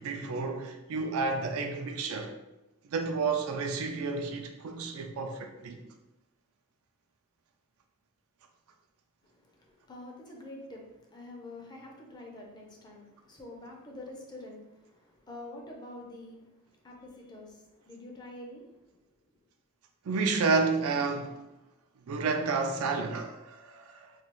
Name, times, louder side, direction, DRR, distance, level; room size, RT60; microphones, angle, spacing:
voice 1, 0.0-2.3 2.9-5.8 20.0-21.4 22.1-24.1, right 4 dB, 70° right, 0.4 m, -30 dB
voice 2, 9.2-18.8, left 1 dB, 20° left, 0.5 m, -47 dB
3.2 x 2.3 x 2.9 m
head